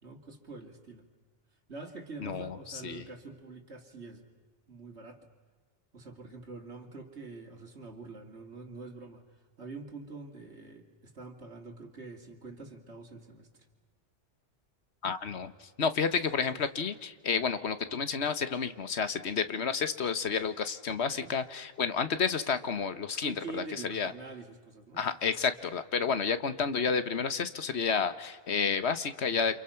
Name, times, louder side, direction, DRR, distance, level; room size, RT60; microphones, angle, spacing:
voice 1, 0.0-1.1 1.7-4.3 4.7-5.2 5.9-13.5 16.5-16.6 21.1-21.3 23.2-25.2, right 3 dB, 75° right, 4 dB, 3.0 m, -46 dB
voice 2, 2.2-3.1 15.0-24.1 25.0-29.6, left 6 dB, 75° left, 11 dB, 1.4 m, -30 dB
29.5 x 27.5 x 5.8 m, 1.4 s
omnidirectional pair, 1.1 m